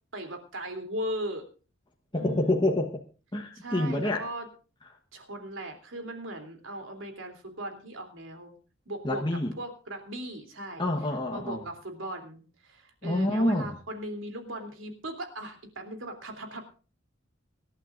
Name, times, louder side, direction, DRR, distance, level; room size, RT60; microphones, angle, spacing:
voice 1, 0.1-1.4 2.2-2.6 3.5-4.5 5.1-8.5 8.9-9.2 9.6-10.9 11.3-16.6, right 1 dB, 80° right, 5 dB, 3.1 m, -38 dB
voice 2, 2.1-3.0 3.3-4.3 9.0-9.5 10.8-11.6 13.0-13.7, left 1 dB, 25° left, 1 dB, 1.1 m, -27 dB
25.5 x 11.5 x 2.5 m, 0.36 s
head